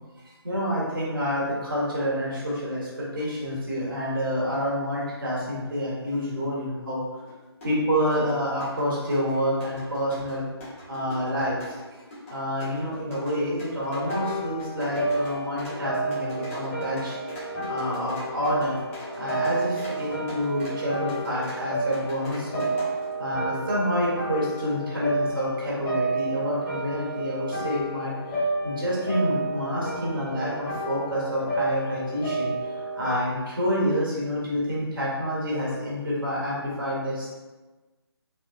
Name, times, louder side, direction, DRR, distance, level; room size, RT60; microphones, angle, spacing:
voice 1, 0.2-7.0 7.6-10.5 10.9-11.7 12.3-17.1 17.7-18.8 19.2-22.7 23.2-37.4, equal, 55° right, -6 dB, 1.2 m, -28 dB
sound 1, 7.3-7.4 7.6-23.1, left 1 dB, 30° left, 1.0 m, -41 dB
sound 2, 13.9-33.2, right 2 dB, 10° left, 0.6 m, -31 dB
3.2 x 2.9 x 2.4 m, 1.2 s
figure-of-eight pair, 145°, 14 cm